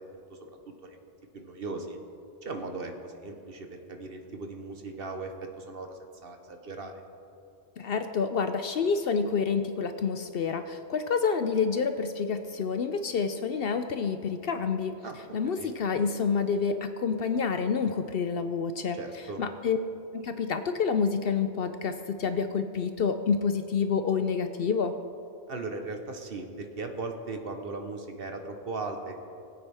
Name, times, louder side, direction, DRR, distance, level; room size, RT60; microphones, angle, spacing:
voice 1, 0.1-0.5 0.8-1.0 1.3-2.0 2.4-6.9 15.0-15.7 19.0-19.4 25.5-29.1, right 3 dB, 55° right, 5 dB, 1.2 m, -38 dB
voice 2, 7.8-15.0 15.3-19.0 19.4-19.8 20.1-24.9, left 5 dB, 60° left, 8 dB, 0.7 m, -28 dB
20.0 x 8.8 x 3.5 m, 2.7 s
omnidirectional pair, 1.2 m